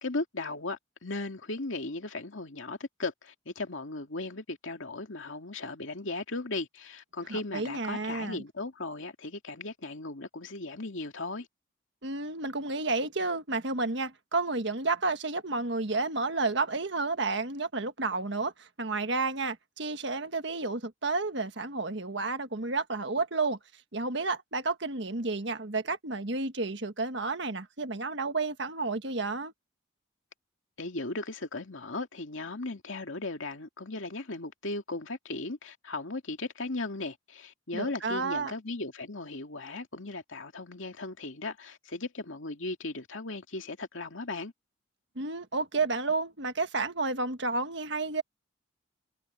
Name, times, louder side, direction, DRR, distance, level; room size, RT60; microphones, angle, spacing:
voice 1, 0.0-11.5 30.8-44.5, left 2 dB, 70° left, 2.4 m, -37 dB
voice 2, 7.3-8.4 12.0-23.6 23.9-29.5 37.7-38.5 45.2-48.2, right 3 dB, 60° right, 1.5 m, -31 dB
head